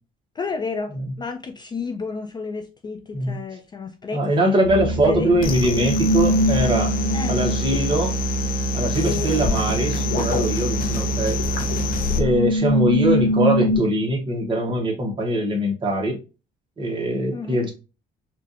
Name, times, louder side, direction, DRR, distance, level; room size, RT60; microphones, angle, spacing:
voice 1, 0.4-4.6 5.1-5.3 7.1-7.4 9.0-9.4 17.3-17.6, left 4 dB, 25° left, 0.3 m, -31 dB
voice 2, 4.1-7.0 7.3-8.1 8.7-11.6 12.1-16.2 16.8-17.7, right 1 dB, 25° right, 1.2 m, -22 dB
sound 1, 4.6-13.8, equal, 75° left, 1.3 m, -24 dB
sound 2, 5.4-12.2, equal, 55° left, 0.7 m, -25 dB
4.5 x 2.5 x 2.6 m
cardioid pair, 130°, 18 cm